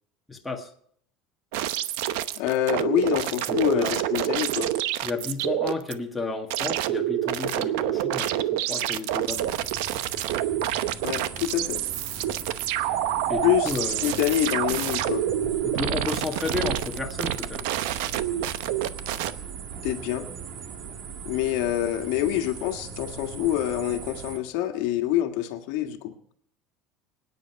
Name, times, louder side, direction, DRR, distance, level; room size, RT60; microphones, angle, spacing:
voice 1, 0.3-0.7 3.5-4.0 5.0-9.6 13.3-14.3 15.6-17.6, left 4 dB, 5° left, 0 dB, 1.7 m, -32 dB
sound 1, 1.5-5.9 6.5-19.3, right 12 dB, 75° right, 0.8 m, -27 dB
voice 2, 2.4-4.7 11.0-11.8 13.4-15.2 19.8-20.3 21.2-26.1, left 12 dB, 65° left, 6 dB, 1.6 m, -26 dB
sound 2, 9.3-24.4, right 6 dB, 45° right, 1.7 m, -39 dB
25.0 x 9.7 x 4.6 m, 0.65 s
cardioid pair, 165°, 0 cm